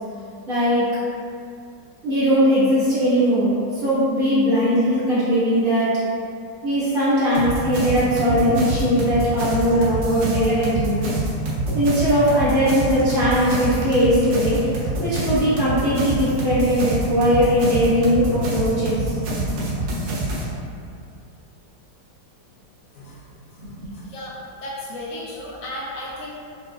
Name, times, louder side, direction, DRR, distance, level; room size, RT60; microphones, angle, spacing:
voice 1, 0.5-0.9 2.0-5.9 6.6-11.1 11.7-14.6 15.0-19.6 23.8-23.9, equal, 55° right, -12 dB, 1.6 m, -20 dB
sound 1, 7.3-20.4, right 2 dB, 90° right, 1.4 m, -26 dB
voice 2, 22.9-24.4 24.6-26.4, left 1 dB, 75° left, -5 dB, 0.8 m, -35 dB
5.6 x 2.4 x 2.3 m, 2.4 s
omnidirectional pair, 1.9 m